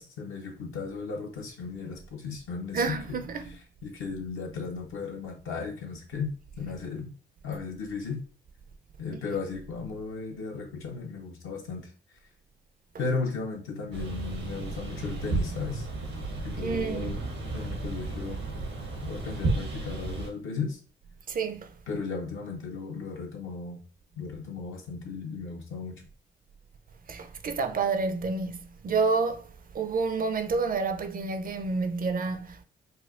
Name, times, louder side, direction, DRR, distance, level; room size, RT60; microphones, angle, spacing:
voice 1, 0.0-3.2 3.8-7.1 7.4-8.2 9.0-11.9 13.0-15.9 16.4-17.2 17.5-18.4 19.0-20.8 21.9-23.8 24.1-26.0, left 4 dB, 75° left, 1.0 m, -35 dB
voice 2, 2.7-3.5 16.6-17.2 21.3-21.7 27.1-29.5 29.7-32.6, right 4 dB, 45° right, 0.5 m, -29 dB
sound 1, 13.9-20.3, right 2 dB, 90° right, 1.0 m, -33 dB
4.2 x 2.2 x 2.4 m
supercardioid pair, 55°, 21 cm